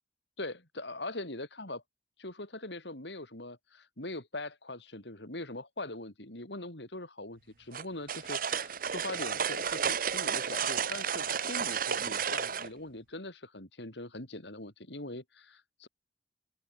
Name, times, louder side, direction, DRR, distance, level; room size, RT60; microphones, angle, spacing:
voice 1, 0.4-1.8 2.2-15.9, left 2 dB, 75° left, 5.7 m, -42 dB
sound 1, 7.7-12.7, right 7 dB, 50° right, 1.3 m, -32 dB
open air
head